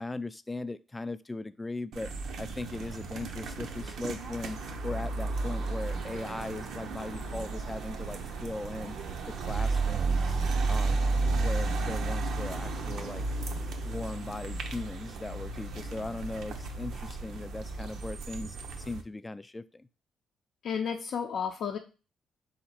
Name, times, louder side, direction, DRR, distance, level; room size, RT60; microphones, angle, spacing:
voice 1, 0.0-2.1 2.4-9.0 9.5-10.4 10.7-13.2 13.8-19.9, left 2 dB, 15° left, 13 dB, 0.3 m, -39 dB
sound 1, 1.9-19.0, right 3 dB, 70° right, 0.6 m, -33 dB
sound 2, 2.7-17.8, right 2 dB, 90° right, 1.3 m, -52 dB
voice 2, 20.6-21.8, left 7 dB, 70° left, 1 dB, 0.5 m, -32 dB
3.8 x 2.8 x 4.3 m, 0.34 s
cardioid pair, 90°, 0 cm